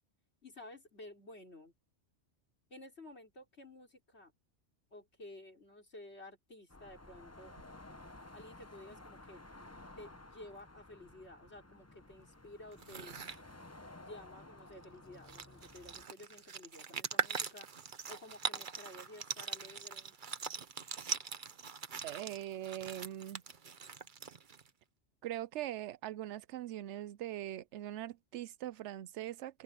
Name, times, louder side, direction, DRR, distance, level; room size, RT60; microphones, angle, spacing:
voice 1, 0.4-1.7 2.7-4.3 4.9-7.5 8.3-9.4 10.0-13.2 14.0-17.7 18.1-20.2, left 1 dB, 65° left, 5.1 m, -53 dB
sound 1, 6.7-16.1, left 2 dB, 15° left, 0.9 m, -54 dB
sound 2, 12.7-13.4 14.8-14.9 15.1-24.7, right 6 dB, 45° right, 1.0 m, -41 dB
voice 2, 22.0-23.4 25.2-29.6, right 13 dB, 75° right, 0.9 m, -42 dB
omnidirectional pair, 1.2 m